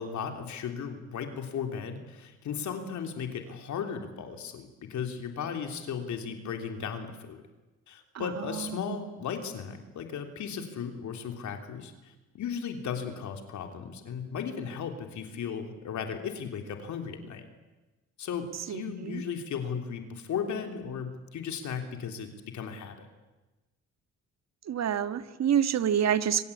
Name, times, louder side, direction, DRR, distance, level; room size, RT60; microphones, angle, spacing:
voice 1, 0.0-7.4 7.9-17.5 18.2-23.1, left 7 dB, 70° left, 5 dB, 3.4 m, -36 dB
voice 2, 18.7-19.2 24.7-26.4, right 9 dB, 60° right, 11 dB, 1.6 m, -27 dB
26.0 x 25.0 x 8.6 m, 1.1 s
cardioid pair, 90°, 30 cm